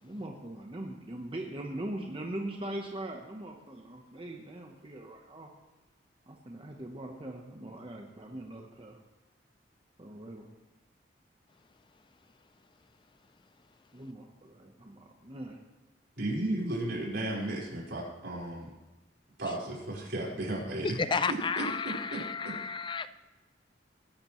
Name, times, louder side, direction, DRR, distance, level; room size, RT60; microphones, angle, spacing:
voice 1, 0.0-5.5 6.3-9.0 10.0-10.5 13.9-15.6, right 1 dB, 30° right, 2 dB, 1.0 m, -41 dB
voice 2, 16.2-18.7 19.4-21.0 21.3-21.6 22.1-22.2 22.4-22.5, right 1 dB, 70° right, -4 dB, 4.8 m, -34 dB
voice 3, 20.8-23.1, left 5 dB, 25° left, 13 dB, 0.4 m, -32 dB
20.5 x 11.0 x 3.1 m, 1.1 s
head